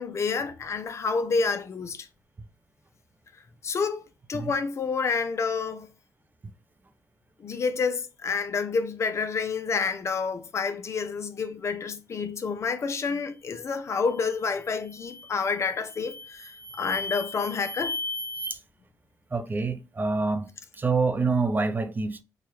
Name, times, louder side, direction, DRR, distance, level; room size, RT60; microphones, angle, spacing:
voice 1, 0.0-2.1 3.6-4.0 4.3-5.9 7.4-16.5 16.8-18.0, left 5 dB, 50° left, 0.5 m, -29 dB
sound 1, 14.1-14.4 14.9-15.4 15.9-18.5, left 1 dB, 50° right, 0.9 m, -36 dB
voice 2, 19.3-20.5 20.7-22.2, right 4 dB, 30° right, 0.5 m, -26 dB
4.6 x 2.3 x 3.0 m
cardioid pair, 75°, 6 cm